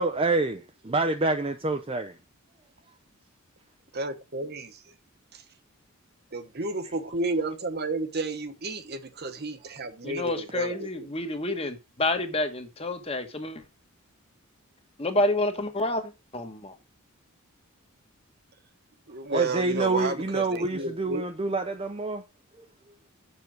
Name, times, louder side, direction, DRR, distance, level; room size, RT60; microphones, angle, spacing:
voice 1, 0.0-2.2 19.3-22.2, right 3 dB, 25° right, 0.6 m, -27 dB
voice 2, 3.9-4.9 5.3-5.4 6.3-10.8 19.1-21.2, right 2 dB, 45° right, 1.1 m, -32 dB
voice 3, 10.0-13.7 15.0-16.8, left 2 dB, 25° left, 1.4 m, -29 dB
7.1 x 6.6 x 6.2 m
head